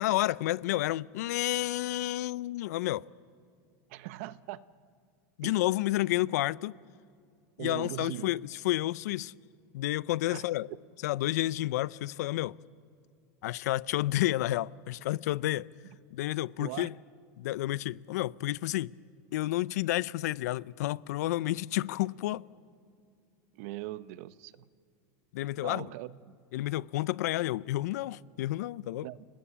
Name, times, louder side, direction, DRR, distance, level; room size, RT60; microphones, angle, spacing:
voice 1, 0.0-3.0 5.4-6.7 7.6-9.3 9.7-10.7 11.0-12.6 13.4-15.7 16.1-16.9 17.4-18.9 19.3-22.4 25.3-25.9 26.5-29.1, left 16 dB, 85° left, 0.5 m, -30 dB
voice 2, 3.9-4.6 5.4-5.6 7.6-8.3 10.3-10.4 16.6-16.9 23.5-24.7 25.6-26.4 29.0-29.2, right 15 dB, 65° right, 0.8 m, -40 dB
29.5 x 19.0 x 8.6 m
supercardioid pair, 150°, 9 cm